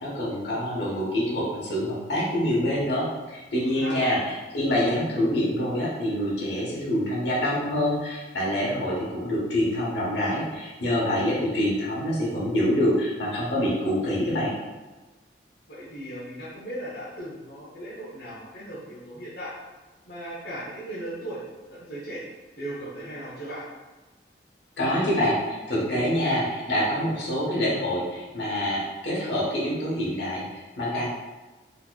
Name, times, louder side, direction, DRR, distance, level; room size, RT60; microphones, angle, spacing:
voice 1, 0.0-14.5 24.8-31.0, equal, 90° left, -5 dB, 1.1 m, -26 dB
voice 2, 3.6-4.0 15.7-19.5 20.0-21.4 21.7-22.2 22.6-23.6, right 1 dB, 60° left, -8 dB, 0.8 m, -37 dB
4.2 x 2.9 x 2.3 m, 1.2 s
head